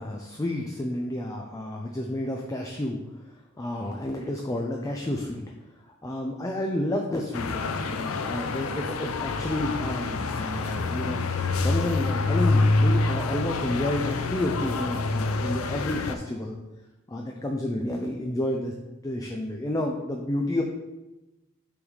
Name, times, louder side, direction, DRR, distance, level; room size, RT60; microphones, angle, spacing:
voice 1, 0.0-5.4 5.9-16.6 17.1-20.6, left 1 dB, 15° left, 1 dB, 0.4 m, -30 dB
sound 1, 7.3-16.2, left 3 dB, 90° left, 0.5 m, -26 dB
5.9 x 4.0 x 4.7 m, 1.0 s
head